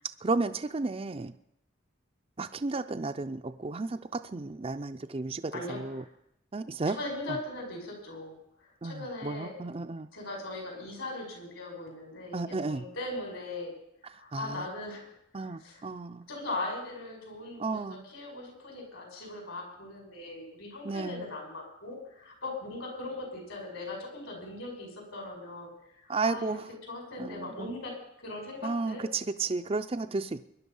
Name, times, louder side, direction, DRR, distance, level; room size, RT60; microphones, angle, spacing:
voice 1, 0.2-1.3 2.4-6.0 6.5-7.0 7.3-7.4 8.8-10.1 12.3-12.8 14.3-14.7 15.3-16.3 17.6-18.1 20.8-21.3 26.1-26.7 27.2-27.7 28.6-30.4, right 3 dB, 30° right, 10 dB, 0.5 m, -33 dB
voice 2, 5.5-6.1 6.9-9.5 10.1-13.7 14.0-15.8 16.3-25.7 26.0-26.6 26.9-29.0, left 2 dB, 70° left, 2 dB, 5.6 m, -40 dB
22.0 x 11.0 x 5.5 m, 0.78 s
head